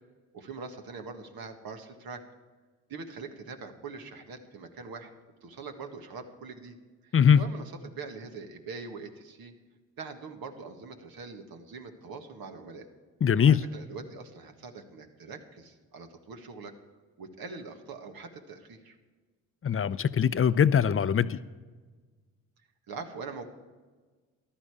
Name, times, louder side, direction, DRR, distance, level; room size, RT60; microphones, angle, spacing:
voice 1, 0.3-2.2 2.9-5.1 5.4-6.8 7.0-9.5 10.0-12.9 13.5-16.7 17.2-19.0 22.9-23.5, right 4 dB, 65° right, 5 dB, 1.7 m, -43 dB
voice 2, 7.1-7.4 13.2-13.6 19.6-21.4, left 8 dB, 35° left, 15 dB, 0.6 m, -22 dB
14.5 x 11.5 x 4.9 m, 1.4 s
supercardioid pair, 50°, 38 cm